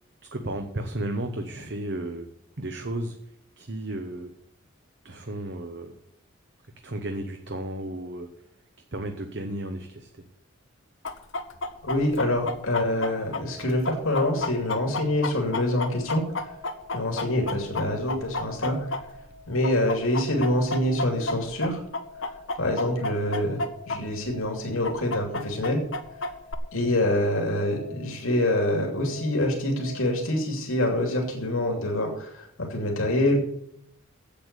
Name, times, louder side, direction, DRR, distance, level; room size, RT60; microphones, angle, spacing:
voice 1, 0.3-2.3 2.6-3.2 3.6-4.3 5.0-6.0 6.8-8.3 8.9-10.2 24.0-24.4, right 1 dB, 55° right, 5 dB, 0.9 m, -33 dB
Chicken rooster, 11.0-19.3 19.6-24.0 24.2-24.3 24.8-26.5, left 2 dB, 65° left, 0.9 m, -31 dB
voice 2, 11.8-16.5 16.9-18.9 19.5-21.8 22.5-25.8 26.7-33.4, left 1 dB, 90° left, 1 dB, 2.8 m, -26 dB
sound 1, 12.4-30.2, left 4 dB, 85° right, 2.0 m, -47 dB
8.6 x 8.2 x 8.2 m, 0.72 s
head